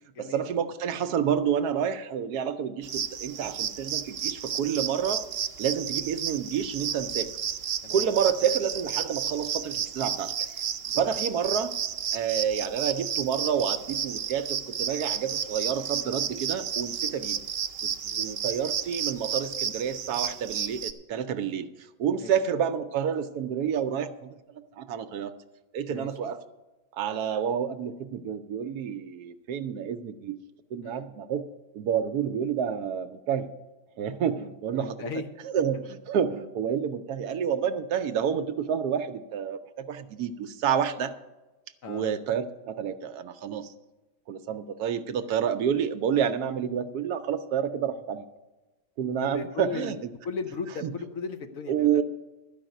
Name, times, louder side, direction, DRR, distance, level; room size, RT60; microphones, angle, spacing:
voice 1, 0.2-5.2 5.6-7.3 7.9-10.5 11.0-11.7 12.1-17.4 17.8-17.9 18.2-24.4 24.8-25.3 25.7-26.4 26.9-30.4 30.7-31.4 31.7-33.5 34.0-35.0 35.5-41.1 41.9-43.7 44.3-48.2 49.0-50.0 50.8-50.9 51.7-52.0, right 8 dB, 70° right, 10 dB, 1.1 m, -29 dB
sound 1, 2.8-20.9, right 8 dB, 90° right, 0.5 m, -32 dB
voice 2, 25.9-26.3 30.8-31.1 34.7-35.3 35.6-35.7 41.8-42.1 49.1-50.0 50.2-52.0, left 4 dB, 60° left, 6 dB, 1.1 m, -37 dB
12.5 x 5.4 x 9.0 m, 1.1 s
omnidirectional pair, 1.8 m